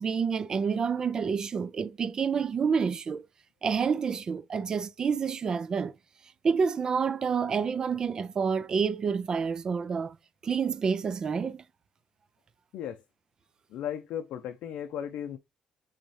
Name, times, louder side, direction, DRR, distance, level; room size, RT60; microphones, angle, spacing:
voice 1, 0.0-3.3 3.6-5.9 6.4-10.2 10.4-11.6, right 6 dB, 30° right, 0.4 m, -28 dB
voice 2, 13.7-15.4, left 9 dB, 75° left, 0.5 m, -35 dB
4.1 x 3.5 x 3.1 m
cardioid pair, 150°, 2 cm